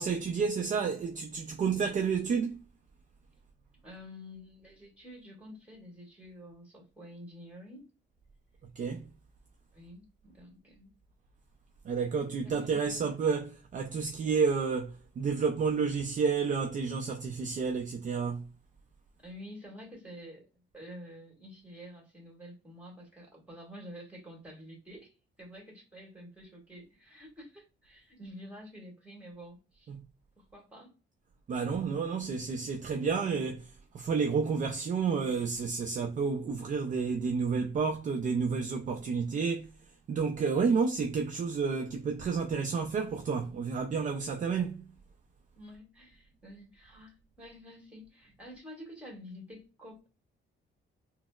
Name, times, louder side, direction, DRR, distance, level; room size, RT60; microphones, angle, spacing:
voice 1, 0.0-2.6 8.8-9.1 11.8-18.5 29.9-30.0 31.5-39.7 40.1-44.9, right 5 dB, 40° right, 0.4 m, -30 dB
voice 2, 3.8-7.9 9.7-10.9 12.4-13.0 19.2-20.5 20.7-29.9 30.4-30.9 45.5-50.1, equal, 5° right, 1.5 m, -49 dB
4.0 x 2.0 x 2.3 m
cardioid pair, 90°, 20 cm